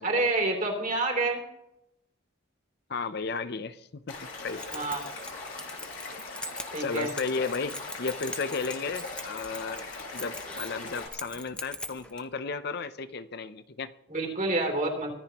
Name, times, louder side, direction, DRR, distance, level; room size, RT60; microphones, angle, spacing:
voice 1, 0.0-1.4 4.7-5.0 6.7-7.1 14.1-15.1, right 2 dB, 40° right, 3.2 m, -28 dB
voice 2, 2.9-4.2 4.4-4.7 6.8-13.9, left 4 dB, 50° left, 0.6 m, -34 dB
Stream / Liquid, 4.1-11.1, left 3 dB, 80° left, 5.3 m, -40 dB
Keys jangling, 4.3-12.2, left 1 dB, 5° left, 0.7 m, -42 dB
24.0 x 16.5 x 3.0 m
head